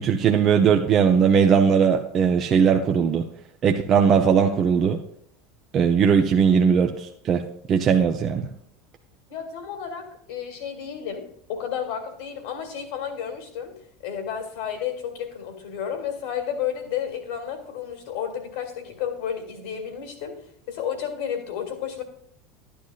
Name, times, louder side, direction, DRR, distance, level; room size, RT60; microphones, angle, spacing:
voice 1, 0.0-3.2 3.6-5.0 5.7-7.4 7.7-8.5, right 7 dB, 40° right, 4 dB, 0.7 m, -19 dB
voice 2, 9.3-13.7 14.0-20.4 20.7-22.0, left 8 dB, 65° left, 4 dB, 2.2 m, -32 dB
12.5 x 10.0 x 2.5 m, 0.66 s
figure-of-eight pair, 75°, 0 cm